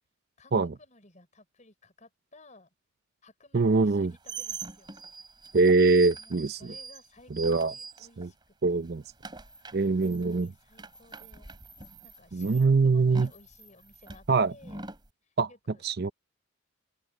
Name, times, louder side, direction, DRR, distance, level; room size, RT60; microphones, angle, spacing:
voice 1, 0.4-2.7 3.2-4.9 6.2-8.9 9.6-9.9 10.2-11.5 12.0-14.8 15.2-15.8, left 2 dB, 35° left, 5.2 m, -57 dB
voice 2, 3.5-4.1 5.5-6.6 7.4-7.7 8.2-8.3 8.6-9.0 9.7-10.5 12.3-13.3 14.3-14.5 15.4-15.5 15.8-16.1, right 3 dB, 50° right, 0.6 m, -23 dB
sound 1, 3.8-8.4 8.7-15.1, right 4 dB, 20° right, 3.8 m, -44 dB
open air
head